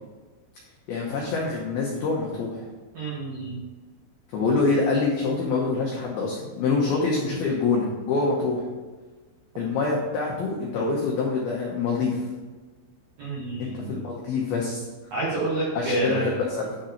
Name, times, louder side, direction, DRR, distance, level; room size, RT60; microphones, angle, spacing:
voice 1, 0.9-2.6 4.3-8.6 9.6-12.2 13.6-14.9 15.7-16.9, left 4 dB, 90° left, -2 dB, 2.1 m, -25 dB
voice 2, 2.9-3.6 13.2-13.9 15.1-16.3, right 2 dB, 90° right, -6 dB, 1.6 m, -28 dB
9.9 x 3.9 x 4.3 m, 1.3 s
omnidirectional pair, 5.7 m